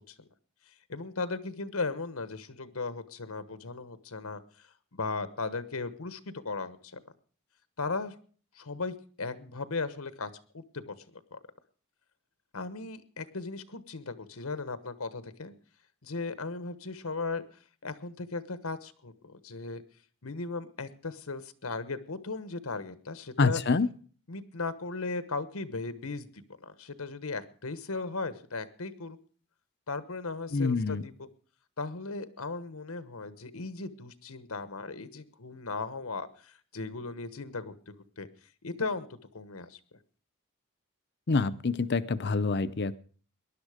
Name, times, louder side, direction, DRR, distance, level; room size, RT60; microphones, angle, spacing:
voice 1, 0.9-4.4 4.9-7.0 7.8-8.1 8.6-11.4 12.5-15.5 16.0-17.4 17.8-19.8 20.2-23.6 24.3-29.2 29.9-31.3 31.8-38.3 38.6-39.1 39.3-39.8, left 3 dB, 80° left, 13 dB, 1.2 m, -37 dB
voice 2, 23.4-23.9 30.5-31.0 41.3-43.0, left 4 dB, 50° left, 14 dB, 0.7 m, -26 dB
19.0 x 11.5 x 5.0 m, 0.43 s
head